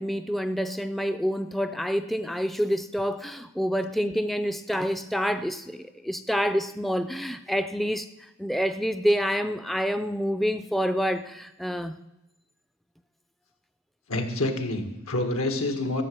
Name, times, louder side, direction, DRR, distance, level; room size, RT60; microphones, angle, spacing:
voice 1, 0.0-12.0, equal, ahead, 10 dB, 0.4 m, -27 dB
voice 2, 14.1-16.0, left 2 dB, 85° left, 5 dB, 2.0 m, -27 dB
15.0 x 7.3 x 8.0 m, 0.96 s
head